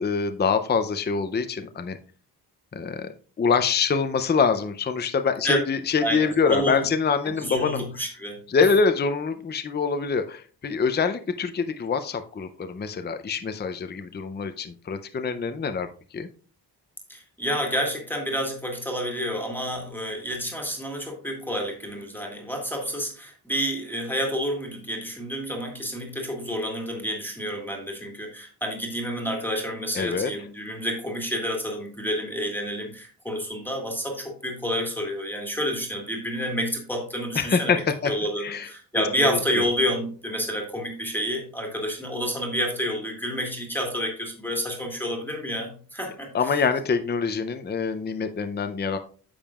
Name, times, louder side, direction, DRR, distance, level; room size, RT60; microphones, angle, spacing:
voice 1, 0.0-2.0 2.7-3.1 3.4-7.8 8.5-16.3 29.9-30.3 37.3-38.1 38.4-38.7 39.2-39.4 46.3-49.0, left 5 dB, 25° left, 9 dB, 0.5 m, -25 dB
voice 2, 6.0-6.8 7.2-8.4 17.1-37.8 38.0-46.3, equal, 5° left, 0 dB, 1.7 m, -29 dB
9.9 x 7.2 x 2.4 m, 0.40 s
wide cardioid pair, 160°, 40 cm